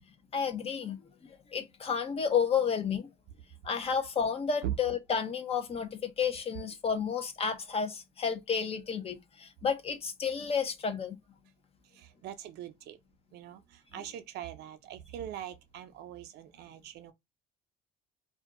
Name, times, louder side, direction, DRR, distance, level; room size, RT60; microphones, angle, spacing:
voice 1, 0.3-1.0 1.5-3.1 3.6-11.2, left 6 dB, 35° left, 0.6 m, -31 dB
voice 2, 11.9-13.0 13.3-17.1, right 11 dB, 75° right, 0.6 m, -41 dB
2.5 x 2.2 x 3.7 m
cardioid pair, 110°, 17 cm